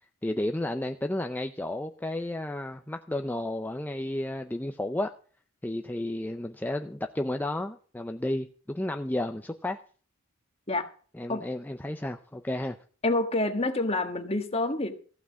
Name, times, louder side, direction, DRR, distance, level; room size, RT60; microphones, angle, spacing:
voice 1, 0.2-5.1 5.6-9.8 11.1-12.8, left 1 dB, 10° left, 0.5 m, -32 dB
voice 2, 13.0-14.9, left 2 dB, 30° left, 1.5 m, -27 dB
15.0 x 5.9 x 8.3 m
head